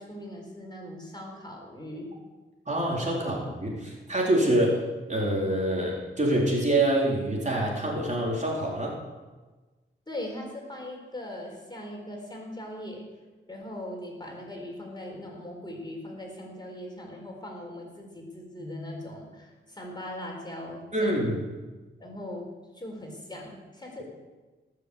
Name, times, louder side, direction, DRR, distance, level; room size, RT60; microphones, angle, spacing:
voice 1, 0.0-2.1 10.1-13.1 13.5-21.1 22.0-24.0, left 1 dB, 20° left, 0 dB, 4.3 m, -40 dB
voice 2, 2.7-4.8 5.1-9.0 20.9-21.4, right 1 dB, 35° right, -3 dB, 4.0 m, -26 dB
18.5 x 6.9 x 8.4 m, 1.3 s
cardioid pair, 65°, 21 cm